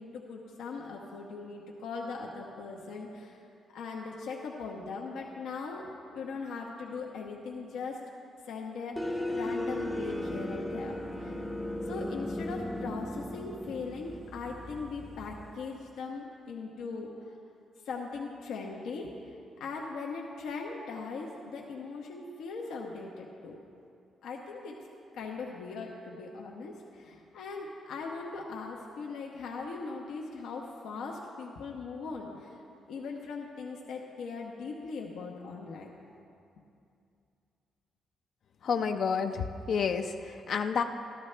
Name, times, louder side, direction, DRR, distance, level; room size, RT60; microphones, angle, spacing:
voice 1, 0.0-3.4 3.7-8.0 8.5-11.5 11.9-17.2 17.8-19.3 19.6-23.6 24.2-24.8 25.1-32.6 32.9-35.9, left 4 dB, 80° left, -1 dB, 1.0 m, -40 dB
sound 1, 9.0-15.5, left 1 dB, 5° left, 0.6 m, -36 dB
voice 2, 38.6-40.8, left 6 dB, 50° left, 6 dB, 0.4 m, -30 dB
13.5 x 12.5 x 3.3 m, 2.6 s
cardioid pair, 180°, 0 cm